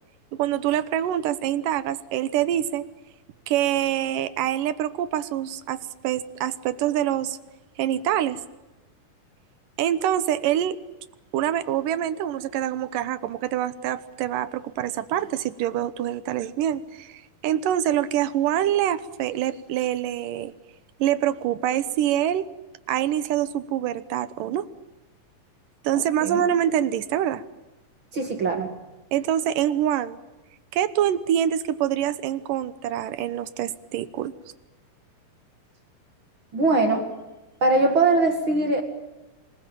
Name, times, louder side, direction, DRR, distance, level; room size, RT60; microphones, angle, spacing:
voice 1, 0.3-2.9 3.5-7.4 7.8-8.4 9.8-10.8 11.3-20.5 21.0-22.5 22.9-24.7 25.8-27.4 29.1-30.2 30.7-34.3, right 11 dB, 75° right, 14 dB, 2.5 m, -25 dB
voice 2, 28.1-28.7 36.5-37.1 37.6-38.8, right 3 dB, 40° right, 5 dB, 2.3 m, -21 dB
26.5 x 20.5 x 8.9 m, 1.1 s
omnidirectional pair, 4.1 m